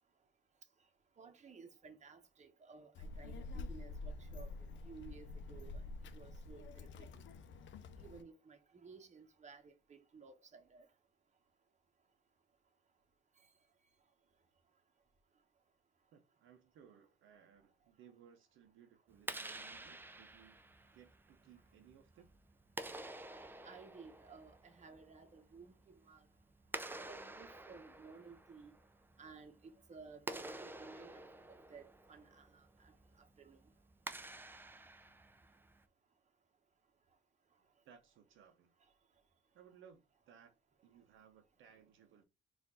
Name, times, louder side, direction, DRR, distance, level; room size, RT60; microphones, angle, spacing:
voice 1, 1.2-4.5 4.8-7.2 8.0-10.9 23.6-26.2 27.0-28.7 29.2-31.2 31.7-33.6, right 5 dB, 35° right, 1.0 m, -56 dB
Child speech kid speaking, 2.9-8.2, left 3 dB, 70° left, 0.5 m, -48 dB
voice 2, 16.1-20.6 20.9-22.3 37.8-38.7 39.5-40.5 40.8-42.2, right 8 dB, 75° right, 0.7 m, -62 dB
Clapping, 19.1-35.8, right 2 dB, 10° right, 0.4 m, -50 dB
4.4 x 2.5 x 3.8 m
cardioid pair, 90°, 20 cm